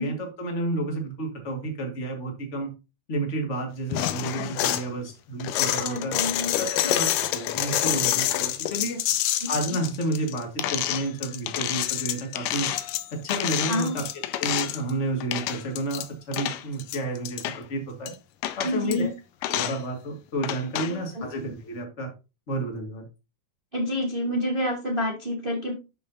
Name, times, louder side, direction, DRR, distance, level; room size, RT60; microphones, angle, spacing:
voice 1, 0.0-2.7 3.1-6.1 6.6-9.0 9.5-12.7 13.1-14.0 14.4-18.1 18.6-19.1 19.5-22.1 22.5-23.0, right 1 dB, 30° left, 2 dB, 1.6 m, -31 dB
sound 1, 3.9-4.9 5.4-14.9 15.2-16.1 16.3-17.6 18.1-18.2 18.4-19.0 19.4-19.8 20.4-20.9, left 13 dB, 85° left, 2.3 m, -28 dB
voice 2, 5.8-6.5 9.4-9.5 13.7-13.9 18.6-19.1 20.8-21.2 23.7-25.7, equal, 75° right, -1 dB, 0.5 m, -28 dB
12.0 x 5.5 x 2.7 m, 0.29 s
omnidirectional pair, 3.8 m